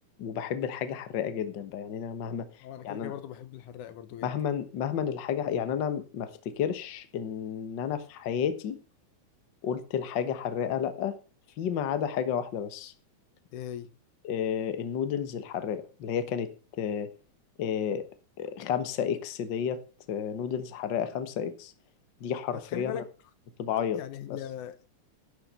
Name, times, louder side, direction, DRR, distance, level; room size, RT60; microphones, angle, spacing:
voice 1, 0.2-2.5 2.8-3.1 4.2-8.8 9.6-11.2 11.6-12.9 14.2-17.1 17.6-18.1 18.4-19.8 20.1-21.7 22.2-23.0 23.6-24.0 24.3-24.4, left 8 dB, 50° left, 1.4 m, -31 dB
voice 2, 2.6-4.3 13.5-13.9 22.5-23.0 24.0-24.9, left 10 dB, 85° left, 2.5 m, -39 dB
11.5 x 6.7 x 6.8 m
omnidirectional pair, 3.5 m